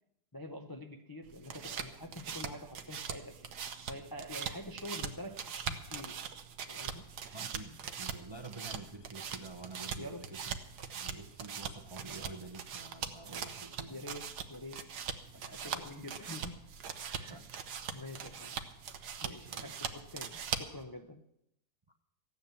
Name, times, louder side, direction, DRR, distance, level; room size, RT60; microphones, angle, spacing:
voice 1, 0.3-3.5 3.9-6.2 6.7-7.1 10.0-10.3 13.9-14.9 15.3-16.7 17.0-17.4 17.9-18.6 19.2-21.2, left 1 dB, 25° left, 4 dB, 0.5 m, -46 dB
sound 1, 1.2-20.8, right 7 dB, 80° right, 1.6 m, -42 dB
voice 2, 7.3-10.6 10.9-13.9 15.6-16.1 17.2-17.5 19.2-19.7 21.9-22.0, right 3 dB, 25° right, 6 dB, 0.6 m, -49 dB
15.0 x 9.7 x 7.1 m, 0.80 s
omnidirectional pair, 1.7 m